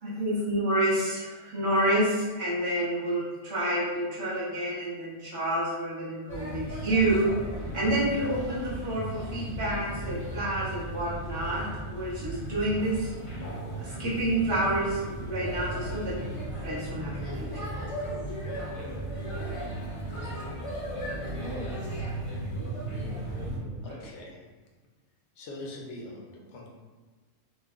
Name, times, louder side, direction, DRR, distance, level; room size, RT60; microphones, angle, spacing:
voice 1, 0.0-1.2 1.5-7.3 7.7-13.1 13.8-16.3 16.6-17.4 17.7-18.0, right 1 dB, 55° right, -9 dB, 1.4 m, -29 dB
Male speech man speaking / Child speech kid speaking / Chatter, 6.3-23.6, right 1 dB, 35° left, 0.6 m, -36 dB
voice 2, 18.5-19.0 20.5-22.0 22.8-24.1, equal, 85° right, -5 dB, 1.2 m, -45 dB
voice 3, 23.8-24.4 25.4-26.7, left 2 dB, 70° left, -2 dB, 1.0 m, -42 dB
4.1 x 2.2 x 2.4 m, 1.3 s
omnidirectional pair, 1.3 m